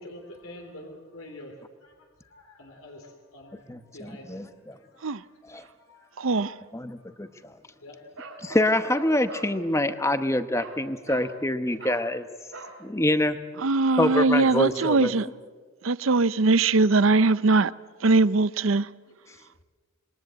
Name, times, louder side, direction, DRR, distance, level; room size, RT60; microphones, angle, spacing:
voice 1, 0.0-1.9 2.2-3.6 3.9-6.6 7.1-7.2 7.8-8.1 8.4-8.6, left 1 dB, 80° left, 3.6 m, -47 dB
voice 2, 3.7-4.8 5.5-5.6 6.7-7.3 8.4-12.3 12.8-13.4 14.0-15.1, left 1 dB, 15° left, 1.0 m, -25 dB
voice 3, 6.2-6.6 13.6-15.3 15.8-17.7 18.0-18.9, right 3 dB, 70° right, 0.7 m, -21 dB
Bark, 8.2-9.5 10.5-10.8 11.1-11.3 11.8-12.1 12.5-12.8, right 3 dB, 85° right, 4.4 m, -41 dB
27.0 x 22.0 x 7.9 m
head